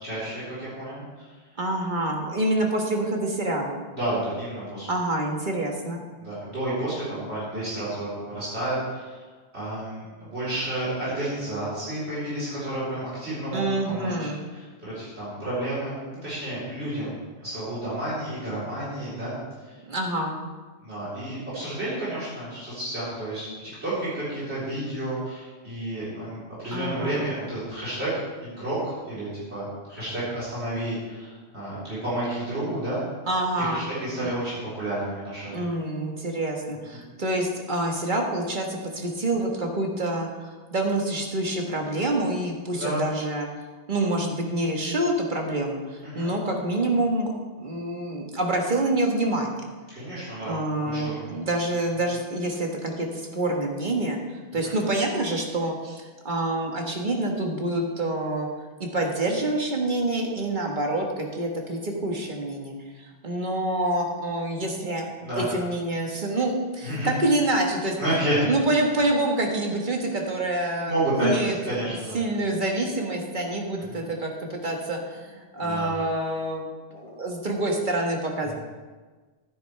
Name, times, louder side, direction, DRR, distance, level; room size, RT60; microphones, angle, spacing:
voice 1, 0.0-1.3 3.9-4.9 6.2-9.2 9.5-16.0 16.2-17.2 17.4-19.3 19.6-19.8 20.8-28.1 28.4-33.0 33.6-35.6 36.9-37.0 42.7-43.0 46.0-46.3 49.9-50.6 50.8-51.4 54.6-54.8 64.6-64.9 65.2-65.6 66.8-67.1 68.0-68.4 70.9-72.2 73.9-74.0 75.6-75.9, right 1 dB, 80° right, -11 dB, 4.5 m, -31 dB
voice 2, 1.6-3.8 4.9-6.0 13.5-14.4 19.9-20.4 26.7-27.2 33.3-33.9 34.2-34.3 35.5-43.5 43.9-49.6 50.4-54.2 54.5-58.5 58.8-65.1 65.4-67.9 68.4-70.9 71.2-78.5, right 1 dB, 50° right, 1 dB, 1.7 m, -27 dB
12.5 x 10.5 x 3.4 m, 1.4 s
omnidirectional pair, 1.1 m